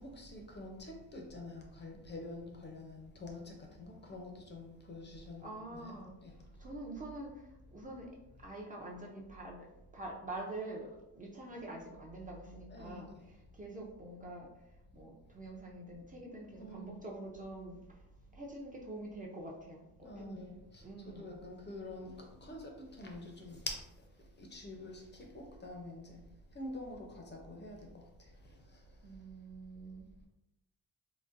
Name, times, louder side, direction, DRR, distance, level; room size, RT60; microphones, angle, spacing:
voice 1, 0.0-6.3 12.7-13.3 16.6-17.1 20.0-26.2 26.5-29.1, left 2 dB, 30° left, 0.5 m, -47 dB
voice 2, 5.4-6.1 6.6-8.1 8.4-9.7 9.9-14.5 14.9-18.0 18.3-20.4 20.8-21.3 29.0-30.1, right 2 dB, 20° right, 0.5 m, -46 dB
3.8 x 2.1 x 2.5 m
cardioid pair, 115°, 36 cm